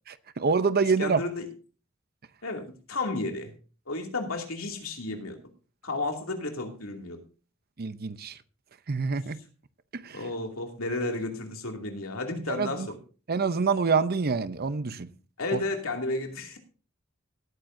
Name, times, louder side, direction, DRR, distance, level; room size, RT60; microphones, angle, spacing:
voice 1, 0.1-1.2 7.8-8.4 8.9-9.4 9.9-10.2 12.5-12.9 13.3-15.1 15.5-15.6, right 5 dB, 45° right, 13 dB, 0.7 m, -26 dB
voice 2, 1.0-1.5 2.4-3.5 3.9-5.4 5.8-7.2 10.1-13.0 15.4-16.6, left 2 dB, 75° left, 3 dB, 2.6 m, -32 dB
18.0 x 9.3 x 2.7 m, 0.37 s
head